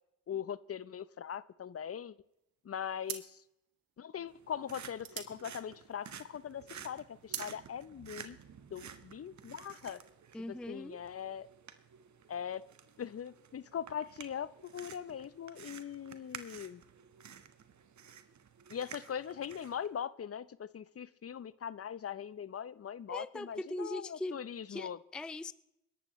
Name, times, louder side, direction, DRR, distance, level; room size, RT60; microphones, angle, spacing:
voice 1, 0.3-2.2 2.6-3.4 4.0-8.4 8.7-10.0 10.5-11.5 12.3-12.6 13.0-16.8 18.7-25.0, left 8 dB, 40° left, 18 dB, 0.7 m, -41 dB
sound 1, 2.3-2.6 3.0-6.4 6.7-7.6, right 10 dB, 75° right, 1.6 m, -44 dB
sound 2, 4.3-19.9, right 7 dB, 55° right, 1.4 m, -52 dB
voice 2, 10.3-11.0 23.1-24.4 24.7-25.5, left 1 dB, 5° left, 17 dB, 0.4 m, -40 dB
21.5 x 11.5 x 3.1 m, 0.85 s
supercardioid pair, 55°, 35 cm